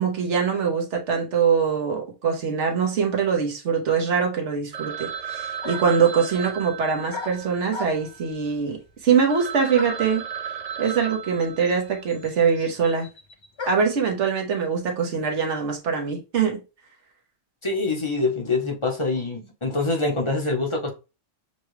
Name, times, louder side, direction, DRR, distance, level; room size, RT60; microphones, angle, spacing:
voice 1, 0.0-10.3 10.8-13.1 13.7-16.6, right 6 dB, 70° right, 1.4 m, -23 dB
Telephone, 4.7-8.5 9.0-9.1 9.3-12.2, right 8 dB, 55° right, 0.4 m, -35 dB
sound 1, 5.1-5.2 5.6-6.1 7.1-8.3 9.8-10.2 11.1-11.2 11.4-14.0, left 3 dB, 50° left, 0.3 m, -37 dB
voice 2, 17.6-20.9, left 3 dB, 25° left, 0.9 m, -25 dB
6.9 x 2.3 x 3.2 m
omnidirectional pair, 1.3 m